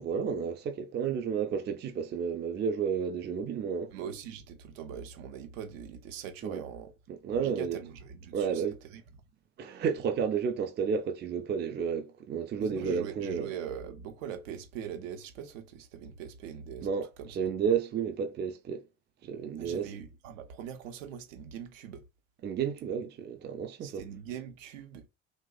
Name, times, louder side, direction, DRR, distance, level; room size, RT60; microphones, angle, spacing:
voice 1, 0.0-3.9 6.4-6.6 7.1-7.8 8.3-8.8 9.6-13.5 16.8-18.8 19.2-19.9 22.4-24.0, right 6 dB, 25° right, 0.5 m, -31 dB
voice 2, 3.9-6.9 7.3-8.6 8.9-9.0 12.6-16.9 17.2-17.4 19.6-22.0 23.8-25.1, right 8 dB, 65° right, 0.8 m, -42 dB
2.8 x 2.1 x 3.8 m
figure-of-eight pair, 55°, 41 cm